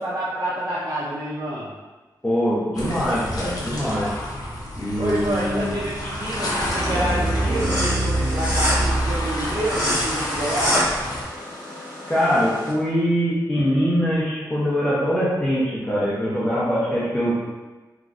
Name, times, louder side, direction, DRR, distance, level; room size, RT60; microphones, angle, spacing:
voice 1, 0.0-1.7 5.0-10.8, right 1 dB, 50° right, -9 dB, 0.5 m, -28 dB
voice 2, 2.2-4.1 4.8-5.7 12.1-17.3, equal, 15° left, -9 dB, 0.6 m, -22 dB
sound 1, 2.7-11.2, left 1 dB, 55° left, 0.6 m, -30 dB
sound 2, 6.2-12.7, equal, 15° right, 1.0 m, -28 dB
sound 3, 6.6-9.7, right 1 dB, 75° right, 0.8 m, -25 dB
3.1 x 2.5 x 2.4 m, 1.2 s
wide cardioid pair, 145°, 8 cm